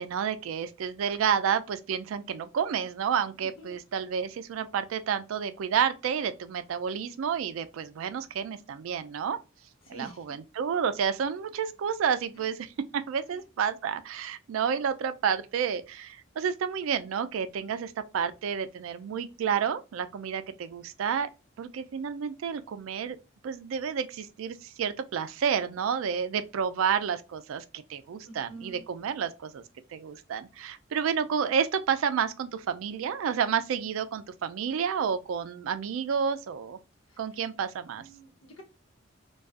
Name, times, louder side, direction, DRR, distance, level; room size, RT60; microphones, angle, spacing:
voice 1, 0.0-9.4 9.9-21.3 21.6-23.2 23.4-29.6 29.9-36.8 37.2-38.0, right 7 dB, 75° right, 0.3 m, -30 dB
voice 2, 9.8-10.2 12.4-12.5 13.3-13.4 28.2-28.8 37.1-37.2 38.0-38.6, right 2 dB, 75° left, 0.9 m, -47 dB
2.4 x 2.2 x 2.4 m
head